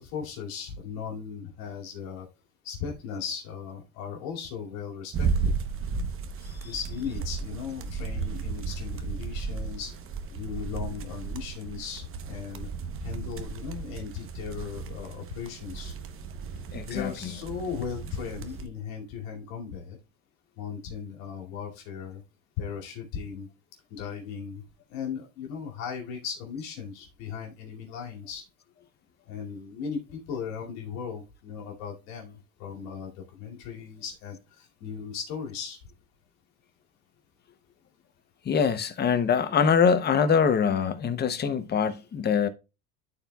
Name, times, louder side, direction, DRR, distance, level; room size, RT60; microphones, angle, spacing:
voice 1, 0.0-2.3 2.6-5.5 6.6-9.9 10.3-12.7 13.0-15.9 16.9-20.0 20.6-22.2 22.6-23.5 23.9-24.6 24.9-28.4 29.3-35.8, left 7 dB, 80° left, 2.5 m, -37 dB
sound 1, 5.1-18.7, right 5 dB, 35° right, 0.9 m, -34 dB
voice 2, 16.7-17.3 38.4-42.5, left 6 dB, 25° left, 0.7 m, -24 dB
13.0 x 4.4 x 2.3 m
cardioid pair, 130°, 40 cm